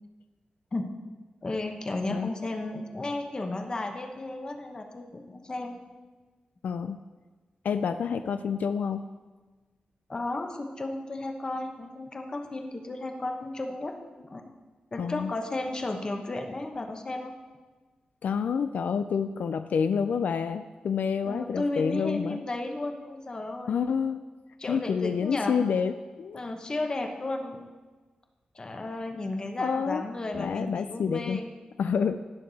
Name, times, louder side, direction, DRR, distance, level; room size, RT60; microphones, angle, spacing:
voice 1, 1.4-5.9 10.1-14.4 14.9-17.3 21.2-23.8 24.6-25.6 26.3-27.7 28.5-31.5, left 2 dB, 30° left, 4 dB, 1.0 m, -34 dB
voice 2, 6.6-7.0 7.6-9.1 15.0-15.3 18.2-22.4 23.7-24.2 24.7-26.4 29.6-30.0 30.3-31.4 31.8-32.2, left 6 dB, 80° left, 10 dB, 0.4 m, -28 dB
18.0 x 6.6 x 4.1 m, 1.3 s
wide cardioid pair, 165°, 3 cm